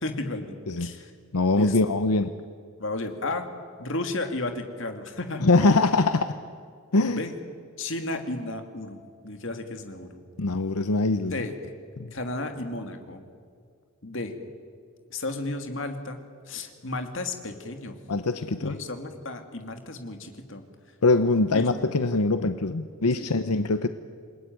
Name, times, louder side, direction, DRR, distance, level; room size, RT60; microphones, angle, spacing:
voice 1, 0.0-1.1 1.5-1.9 2.8-3.4 3.8-5.5 7.1-7.4 7.8-10.2 11.3-11.7 12.1-13.2 14.0-14.3 15.1-17.9 18.6-20.6 21.5-21.7 23.2-23.3, left 2 dB, 55° left, 6 dB, 2.5 m, -33 dB
voice 2, 1.3-2.3 5.4-6.4 6.9-7.2 10.4-11.4 12.0-12.1 18.1-18.8 21.0-23.9, left 3 dB, 90° left, 10 dB, 0.9 m, -23 dB
28.5 x 21.0 x 9.3 m, 2.1 s
head